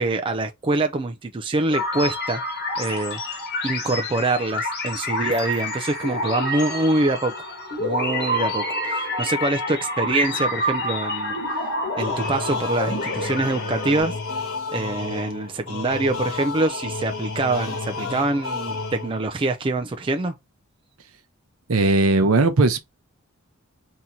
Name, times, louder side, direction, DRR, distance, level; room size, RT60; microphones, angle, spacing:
voice 1, 0.0-2.4 2.8-7.5 7.8-11.7 11.9-14.1 14.7-20.3, right 2 dB, 25° right, 0.4 m, -25 dB
sound 1, 1.7-14.0, left 1 dB, 50° left, 1.2 m, -28 dB
sound 2, 12.0-19.4, left 3 dB, 70° left, 1.3 m, -31 dB
voice 2, 21.7-22.8, right 3 dB, 70° right, 0.7 m, -18 dB
2.8 x 2.8 x 3.6 m
head